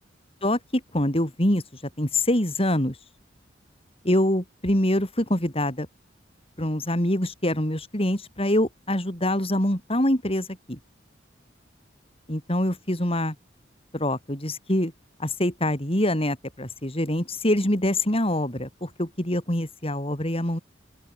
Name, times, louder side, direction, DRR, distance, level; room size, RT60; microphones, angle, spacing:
voice 1, 0.9-1.6 2.0-2.9 4.0-5.9 6.6-10.8 12.3-13.3 13.9-14.9 15.2-20.6, left 1 dB, 30° left, 5.7 m, -25 dB
open air
head